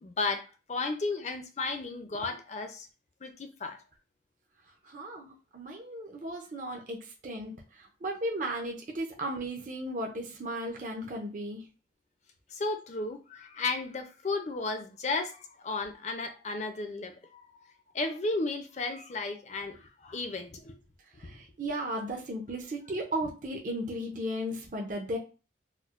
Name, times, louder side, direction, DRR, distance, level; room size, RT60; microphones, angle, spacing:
voice 1, 0.0-2.9 3.2-3.8 12.5-17.4 17.9-20.8, left 3 dB, 40° left, 6 dB, 0.4 m, -34 dB
voice 2, 4.8-11.6 21.2-25.2, right 1 dB, 45° right, 0 dB, 0.5 m, -35 dB
4.3 x 2.0 x 2.4 m, 0.33 s
head